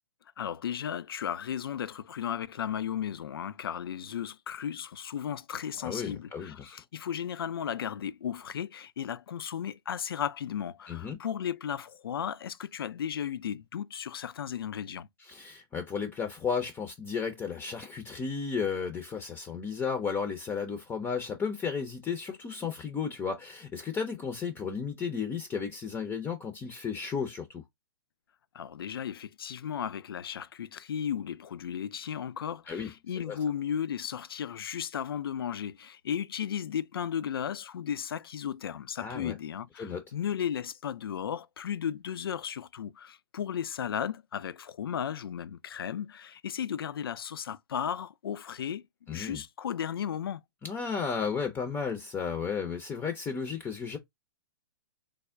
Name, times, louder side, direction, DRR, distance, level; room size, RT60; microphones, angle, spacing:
voice 1, 0.4-15.1 28.5-50.4, left 9 dB, 80° left, 0.4 m, -35 dB
voice 2, 5.8-6.8 10.9-11.2 15.3-27.6 32.7-32.9 33.2-33.4 39.0-39.4 39.8-40.0 49.1-49.4 50.6-54.0, left 6 dB, 15° left, 0.5 m, -33 dB
3.4 x 2.1 x 3.5 m
hypercardioid pair, 120°, 12 cm